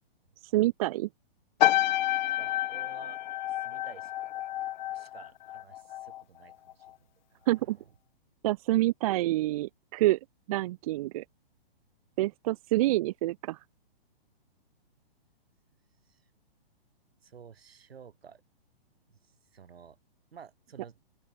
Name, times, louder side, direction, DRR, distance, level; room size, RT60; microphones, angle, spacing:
voice 1, 0.4-1.1 7.5-7.8 8.4-10.2 10.5-11.2 12.2-13.6, right 16 dB, 35° right, 0.7 m, -27 dB
sound 1, 1.6-6.2 6.5-6.9, left 14 dB, 50° left, 1.4 m, -29 dB
voice 2, 2.4-3.2 3.5-4.1 4.9-6.9 7.3-7.9 16.1-16.2 17.2-18.4 19.1-20.0 20.3-21.0, right 7 dB, 75° right, 5.5 m, -52 dB
open air
hypercardioid pair, 140°, 30 cm